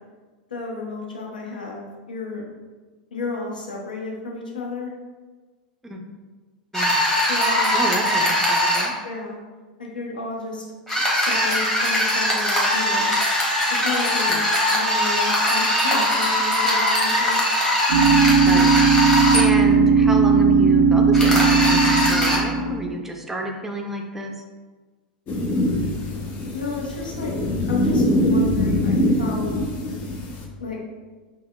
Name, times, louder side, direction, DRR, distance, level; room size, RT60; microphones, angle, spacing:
voice 1, 0.5-2.5 3.1-4.9 7.1-7.8 9.0-9.4 9.8-10.6 11.2-13.1 13.7-14.4 14.7-17.4 26.5-27.3 27.7-29.6 30.6-30.8, left 4 dB, 80° left, -1 dB, 0.7 m, -32 dB
sound 1, 6.7-8.9 10.9-19.4 21.1-22.4, left 1 dB, 10° left, 1.1 m, -21 dB
voice 2, 7.7-8.9 14.3-14.4 18.4-18.7 19.3-24.3, right 1 dB, 5° right, 2 dB, 0.4 m, -29 dB
sound 2, 17.9-22.9, right 5 dB, 65° right, 0.4 m, -17 dB
sound 3, 25.3-30.5, left 1 dB, 40° left, 0.6 m, -23 dB
5.3 x 2.0 x 2.2 m, 1.4 s
figure-of-eight pair, 90°, 5 cm